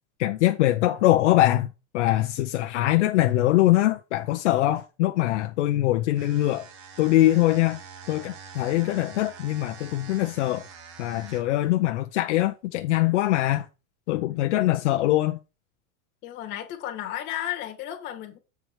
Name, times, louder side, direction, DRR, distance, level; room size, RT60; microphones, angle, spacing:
voice 1, 0.2-1.7 1.9-6.7 7.0-7.8 8.1-10.6 11.0-13.7 14.1-15.4, left 15 dB, 55° left, 0.7 m, -22 dB
sound 1, 6.1-11.6, right 6 dB, 25° right, 0.4 m, -45 dB
voice 2, 16.2-18.4, left 12 dB, 25° left, 1.3 m, -33 dB
7.7 x 4.5 x 4.9 m
supercardioid pair, 175°, 42 cm